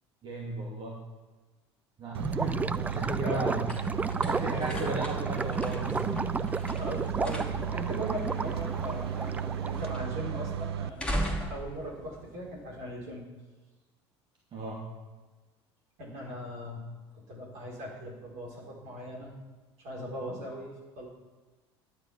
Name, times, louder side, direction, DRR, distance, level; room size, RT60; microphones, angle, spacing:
voice 1, 0.2-1.0 2.0-3.6 4.2-6.6 7.7-7.8 14.5-14.9, right 2 dB, 35° right, -3 dB, 2.5 m, -35 dB
Gurgling / Liquid, 2.1-9.9, right 4 dB, 10° right, 0.4 m, -34 dB
sound 1, 2.1-10.9, right 9 dB, 65° right, 0.5 m, -35 dB
sound 2, 2.4-13.0, equal, 5° left, 3.1 m, -40 dB
voice 2, 3.2-3.5 3.9-4.7 6.7-11.0 11.5-13.3 16.0-16.8 17.1-19.3 19.8-20.7 21.0-21.1, equal, 50° right, -2 dB, 4.6 m, -39 dB
11.0 x 9.8 x 6.0 m, 1.3 s
figure-of-eight pair, 70°, 14 cm